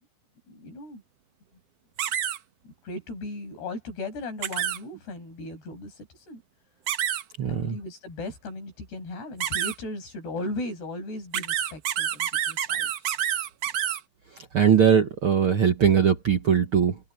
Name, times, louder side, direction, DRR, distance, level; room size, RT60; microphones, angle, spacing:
voice 1, 0.5-1.0 2.6-6.4 7.5-13.1, left 2 dB, 85° left, 9.1 m, -37 dB
sound 1, 2.0-2.4 4.4-4.8 6.9-7.2 9.4-9.7 11.3-14.0, right 10 dB, 90° right, 1.4 m, -27 dB
voice 2, 7.4-7.8 14.5-17.0, right 7 dB, 65° right, 1.3 m, -20 dB
omnidirectional pair, 4.6 m